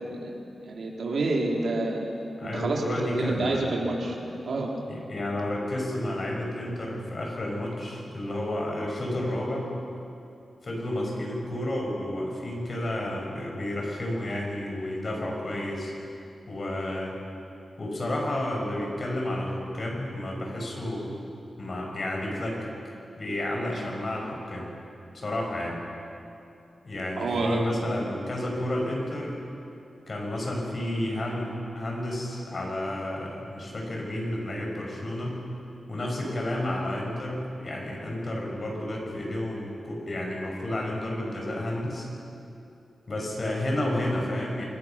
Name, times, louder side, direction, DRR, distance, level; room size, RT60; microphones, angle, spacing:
voice 1, 0.6-2.0 2.5-2.9 3.2-4.2 4.5-4.7 23.7-23.8 27.2-27.6, right 2 dB, 70° right, -1 dB, 3.7 m, -28 dB
voice 2, 2.4-3.7 4.9-9.7 10.6-15.9 16.5-17.2 17.8-21.1 21.6-22.6 23.2-24.7 25.1-25.8 26.8-29.4 30.1-35.4 35.9-42.1 43.1-44.6, left 1 dB, 40° left, -1 dB, 6.2 m, -31 dB
27.5 x 22.5 x 6.0 m, 2.8 s
wide cardioid pair, 135°, 0 cm